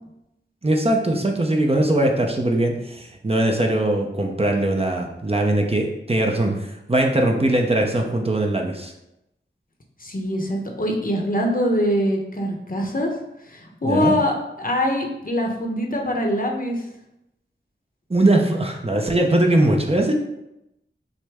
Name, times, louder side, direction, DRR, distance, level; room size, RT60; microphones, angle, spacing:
voice 1, 0.6-8.9 13.8-14.1 18.1-20.1, right 1 dB, 30° right, 1 dB, 0.6 m, -21 dB
voice 2, 10.0-13.1 13.5-16.8, equal, 45° left, 0 dB, 0.8 m, -23 dB
6.2 x 2.1 x 3.5 m, 0.87 s
wide cardioid pair, 45°, 20 cm